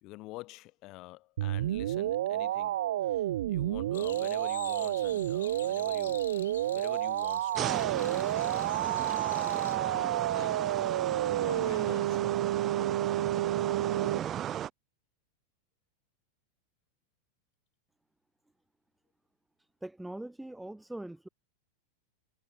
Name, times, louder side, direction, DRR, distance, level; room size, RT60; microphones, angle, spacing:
voice 1, 0.0-2.8 3.0-6.2 6.7-7.9 8.2-8.5 9.8-10.7 11.4-12.4, left 20 dB, 40° left, 2.2 m, -47 dB
FM sine oscillate, 1.4-14.2, right 13 dB, 60° right, 0.6 m, -30 dB
sound 1, 3.9-9.8, left 9 dB, 65° left, 1.8 m, -48 dB
sound 2, 7.5-14.7, right 11 dB, 30° right, 1.3 m, -36 dB
voice 2, 19.8-21.3, right 1 dB, 5° right, 1.8 m, -42 dB
figure-of-eight pair, 90°, 0 cm